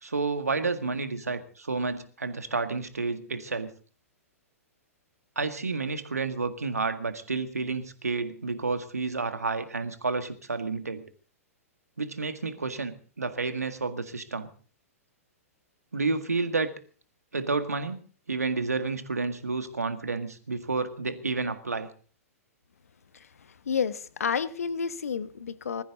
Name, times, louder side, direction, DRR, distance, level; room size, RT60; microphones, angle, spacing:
voice 1, 0.0-3.7 5.4-11.0 12.0-14.5 15.9-16.7 17.3-21.9, right 4 dB, 85° right, 9 dB, 1.8 m, -30 dB
voice 2, 23.1-25.8, left 6 dB, 70° left, 15 dB, 1.1 m, -31 dB
20.5 x 14.0 x 4.0 m, 0.42 s
figure-of-eight pair, 110°, 8 cm